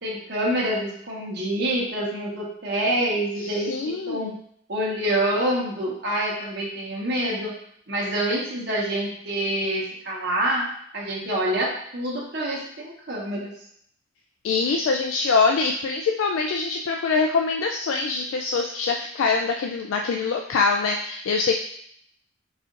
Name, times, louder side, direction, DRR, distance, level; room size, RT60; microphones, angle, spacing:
voice 1, 0.0-4.3 4.7-7.5 7.9-10.6 10.9-13.5, right 1 dB, 55° right, -4 dB, 1.0 m, -26 dB
voice 2, 3.4-4.4 14.4-21.6, left 4 dB, 80° left, 3 dB, 0.3 m, -24 dB
4.1 x 2.5 x 3.7 m, 0.66 s
head